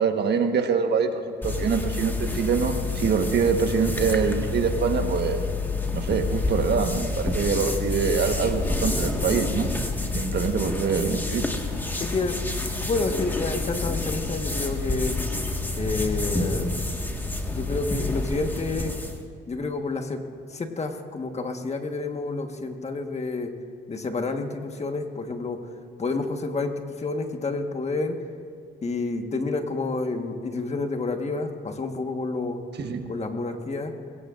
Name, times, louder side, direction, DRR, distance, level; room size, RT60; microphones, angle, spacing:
voice 1, 0.0-5.4 5.9-9.7 10.1-11.5 32.8-33.0, right 6 dB, 60° right, 5 dB, 1.4 m, -24 dB
sound 1, 1.4-19.2, left 3 dB, 10° left, 1.7 m, -28 dB
voice 2, 12.0-15.2 15.8-16.8 17.5-18.9 19.5-20.2 20.5-23.5 23.9-25.6 26.0-28.2 28.8-32.6 33.1-33.9, left 3 dB, 35° left, 5 dB, 1.5 m, -29 dB
21.5 x 17.5 x 2.6 m, 2.3 s
cardioid pair, 90°, 20 cm